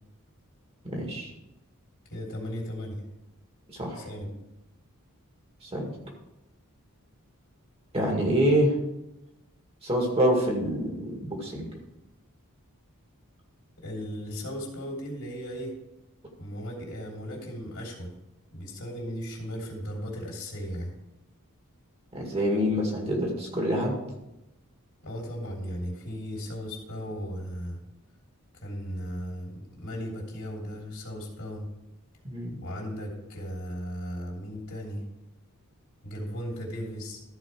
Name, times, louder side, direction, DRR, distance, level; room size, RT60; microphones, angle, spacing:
voice 1, 0.8-1.3 3.7-4.1 5.6-5.9 7.9-8.7 9.8-11.7 22.1-24.0 32.2-32.6, equal, 25° right, 0 dB, 2.0 m, -26 dB
voice 2, 2.1-3.0 3.8-4.3 13.8-15.7 16.4-18.1 18.5-20.9 25.0-27.8 28.6-31.7 32.6-35.0 36.0-37.2, equal, 60° left, -1 dB, 3.1 m, -36 dB
14.0 x 4.9 x 4.7 m, 0.93 s
head